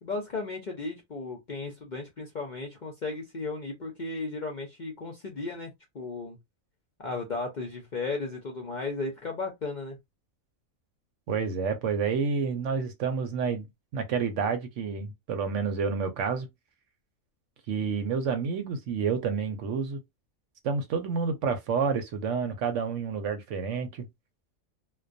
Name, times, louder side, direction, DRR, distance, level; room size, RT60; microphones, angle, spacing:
voice 1, 0.0-6.4 7.0-10.0, left 3 dB, 50° left, 0.5 m, -35 dB
voice 2, 11.3-13.7 13.9-16.5 17.7-20.0 20.6-24.1, right 5 dB, 70° right, 0.9 m, -29 dB
2.2 x 2.2 x 2.5 m
omnidirectional pair, 1.4 m